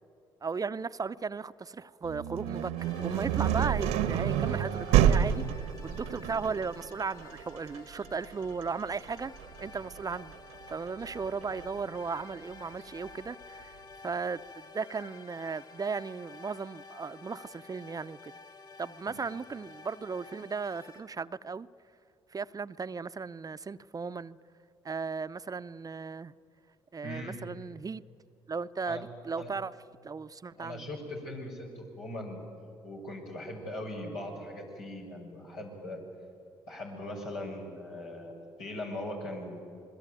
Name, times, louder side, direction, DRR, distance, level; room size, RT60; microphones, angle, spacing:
voice 1, 0.4-9.3 9.6-10.4 10.7-18.3 18.8-21.7 22.3-24.4 24.8-26.3 26.9-28.0 28.5-29.7 30.0-30.9, right 5 dB, 30° right, 13 dB, 0.7 m, -36 dB
sound 1, 2.0-11.8, right 10 dB, 80° right, 1.1 m, -29 dB
sound 2, 2.8-21.0, left 4 dB, 45° left, 5.6 m, -51 dB
voice 2, 27.0-27.4 28.8-29.0 29.3-29.5 30.6-32.4 32.8-36.0 36.7-38.3 38.6-39.6, left 1 dB, 85° left, -3 dB, 6.5 m, -40 dB
27.0 x 21.5 x 9.2 m, 2.6 s
hypercardioid pair, 50°, 11 cm